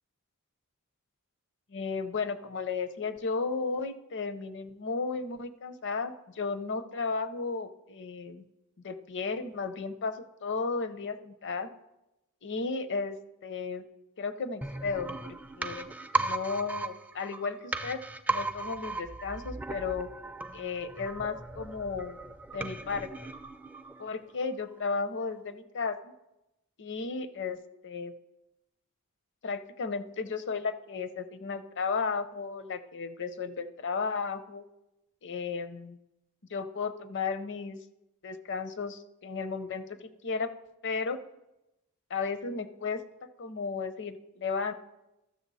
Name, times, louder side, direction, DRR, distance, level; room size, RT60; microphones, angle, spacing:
voice 1, 1.7-8.4 8.8-11.7 12.4-13.2 13.4-13.8 14.2-15.9 16.2-18.0 18.3-20.1 20.5-22.2 22.5-23.1 24.0-26.1 26.8-27.6 27.8-28.1 29.4-34.6 35.2-36.0 36.5-37.8 38.2-40.5 40.8-41.2 42.1-43.0 43.4-44.7, left 4 dB, 55° left, 12 dB, 0.6 m, -34 dB
sound 1, 14.6-24.3 24.6-24.7, right 2 dB, 5° right, 0.3 m, -36 dB
13.0 x 6.7 x 4.1 m, 0.93 s
head